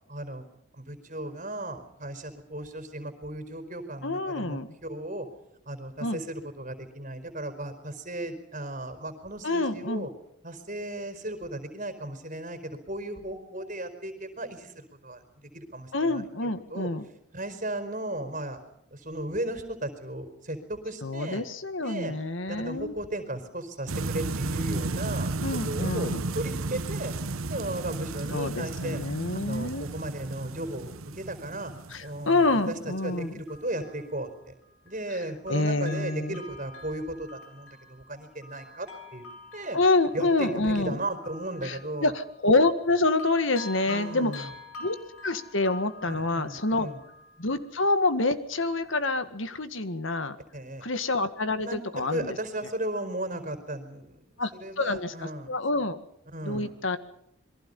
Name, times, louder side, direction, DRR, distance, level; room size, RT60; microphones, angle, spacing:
voice 1, 0.1-0.5 0.7-5.3 5.7-10.1 10.4-15.2 15.5-16.9 17.3-18.6 18.9-21.4 21.8-22.1 22.5-25.3 25.7-27.1 27.5-29.0 29.4-31.7 32.0-34.5 34.8-39.2 39.5-39.8 40.1-42.1 43.9-44.5 46.0-47.0 50.5-50.8 51.6-54.2 54.5-55.8 56.3-56.7, right 1 dB, 40° right, 9 dB, 4.6 m, -36 dB
voice 2, 4.0-4.7 6.0-6.2 9.4-10.1 15.9-17.1 21.0-22.9 25.4-26.2 28.3-29.9 31.9-33.3 35.5-36.4 39.7-41.0 41.6-44.5 44.8-45.0 45.2-46.9 47.4-50.4 50.8-52.4 54.4-54.5 54.8-56.0 56.4-57.0, left 2 dB, 65° left, 10 dB, 1.9 m, -27 dB
sound 1, 23.9-32.9, right 3 dB, 85° right, 1.1 m, -33 dB
Bell, 33.2-35.2 35.5-42.9 43.2-47.8 48.2-48.3, left 2 dB, 90° left, 5.4 m, -47 dB
28.0 x 22.5 x 5.6 m, 0.74 s
head